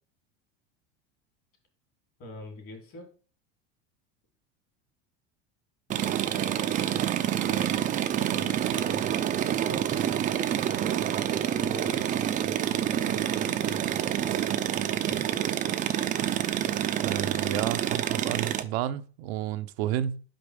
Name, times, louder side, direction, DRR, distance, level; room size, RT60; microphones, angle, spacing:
voice 1, 2.2-3.1 5.9-9.9 10.5-11.0 11.5-12.3 12.6-15.6, left 1 dB, 45° left, 3.0 m, -45 dB
sound 1, 5.9-18.6, right 10 dB, 25° right, 0.4 m, -27 dB
voice 2, 17.0-20.2, right 11 dB, 80° right, 0.6 m, -31 dB
5.7 x 5.1 x 4.9 m
supercardioid pair, 130°, 32 cm